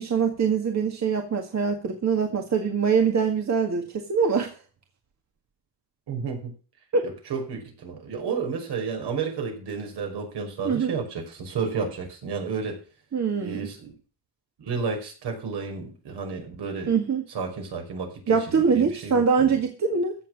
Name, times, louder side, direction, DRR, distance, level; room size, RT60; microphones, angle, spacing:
voice 1, 0.0-4.5 6.9-7.1 10.6-10.9 13.1-13.7 16.9-17.2 18.3-20.1, right 6 dB, 40° right, 4 dB, 2.0 m, -23 dB
voice 2, 6.1-6.5 7.0-12.8 13.4-13.9 14.6-16.9 17.3-19.6, right 5 dB, 65° right, 3 dB, 5.3 m, -32 dB
15.0 x 7.1 x 6.4 m, 0.38 s
cardioid pair, 140°, 43 cm